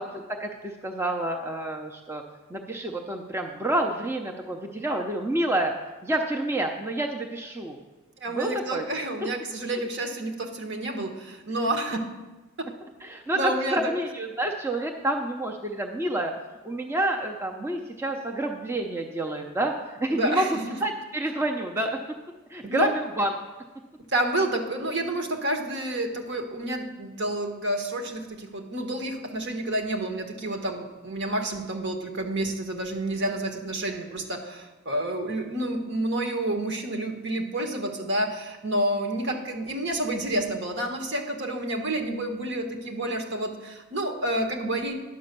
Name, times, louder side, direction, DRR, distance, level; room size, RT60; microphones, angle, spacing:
voice 1, 0.0-2.2 2.5-5.7 6.0-7.8 8.3-8.9 13.0-16.3 16.6-22.0 22.5-23.3 39.2-39.3, right 1 dB, 10° right, 2 dB, 0.6 m, -28 dB
voice 2, 8.2-12.0 13.3-13.9 20.1-20.8 22.6-22.9 24.1-44.9, right 1 dB, 55° right, 4 dB, 1.3 m, -29 dB
10.5 x 6.2 x 6.8 m, 1.2 s
head